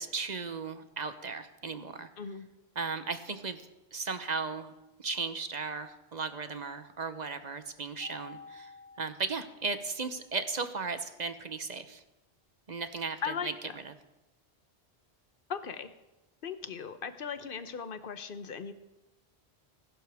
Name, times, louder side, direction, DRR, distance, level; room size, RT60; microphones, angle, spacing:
voice 1, 0.0-2.1 2.8-3.6 3.9-4.7 5.0-8.7 9.0-12.0 12.7-13.5 13.8-13.9, right 4 dB, 40° right, 9 dB, 1.0 m, -36 dB
voice 2, 2.2-2.5 13.2-13.5 15.5-15.9 16.4-18.7, left 6 dB, 55° left, 11 dB, 1.0 m, -37 dB
Mallet percussion, 8.0-10.3, left 4 dB, 80° left, 2.9 m, -52 dB
20.5 x 12.0 x 3.6 m, 1.0 s
omnidirectional pair, 1.1 m